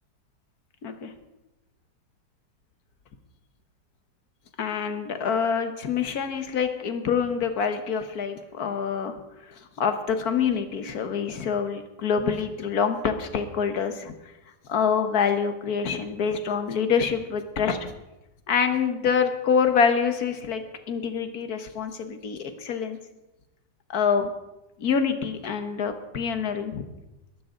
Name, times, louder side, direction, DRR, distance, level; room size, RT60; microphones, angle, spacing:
voice 1, 4.6-9.1 9.5-14.1 14.7-17.9 18.5-23.0 23.9-24.3 24.8-26.9, left 6 dB, 60° left, 8 dB, 1.7 m, -26 dB
22.0 x 12.0 x 3.9 m, 0.98 s
omnidirectional pair, 1.9 m